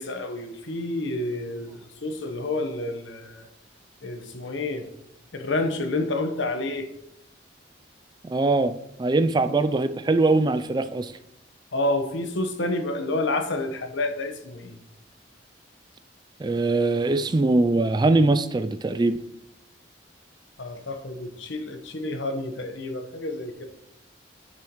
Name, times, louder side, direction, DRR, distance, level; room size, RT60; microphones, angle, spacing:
voice 1, 0.0-1.7 2.0-3.5 4.0-4.8 5.3-6.9 11.7-14.8 20.6-23.6, left 2 dB, 75° left, 1.0 m, -29 dB
voice 2, 8.2-8.7 9.0-11.1 16.4-19.2, right 2 dB, 20° right, 0.3 m, -22 dB
9.9 x 6.8 x 3.1 m
head